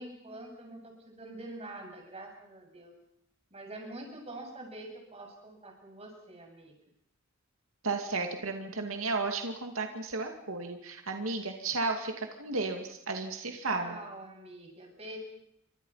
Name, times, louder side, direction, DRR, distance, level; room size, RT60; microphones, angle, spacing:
voice 1, 0.0-2.9 3.5-6.7 13.6-15.2, right 1 dB, 30° right, 1 dB, 7.8 m, -45 dB
voice 2, 7.8-14.0, right 3 dB, 90° right, 4 dB, 2.5 m, -33 dB
29.0 x 25.5 x 5.8 m, 0.74 s
head